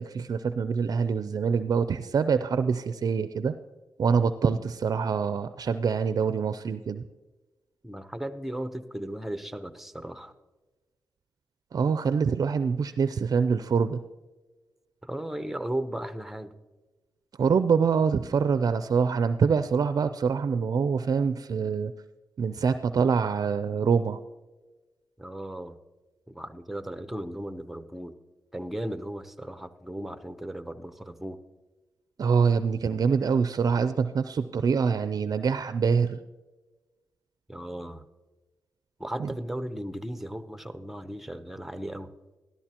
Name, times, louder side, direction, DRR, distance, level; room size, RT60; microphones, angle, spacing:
voice 1, 0.0-3.5 4.0-7.0 11.7-14.0 17.4-21.9 22.4-24.2 32.2-36.2 39.2-39.3, right 6 dB, 55° right, 11 dB, 0.4 m, -25 dB
voice 2, 7.8-10.3 15.0-16.5 25.2-25.8 26.3-28.1 28.5-31.4 37.5-38.1 39.0-42.1, right 1 dB, 5° right, 11 dB, 0.7 m, -36 dB
13.5 x 12.5 x 2.9 m, 1.2 s
cardioid pair, 65°, 7 cm